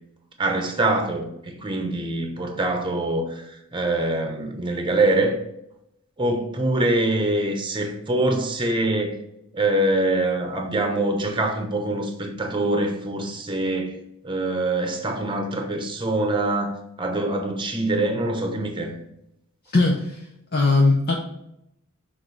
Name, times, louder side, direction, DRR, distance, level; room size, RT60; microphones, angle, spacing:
voice 1, 0.4-5.4 6.2-9.2 9.5-14.0 14.2-18.9, right 2 dB, 20° right, 4 dB, 0.9 m, -24 dB
voice 2, 19.7-21.1, left 3 dB, 45° left, -2 dB, 0.8 m, -20 dB
6.5 x 3.8 x 4.0 m, 0.80 s
head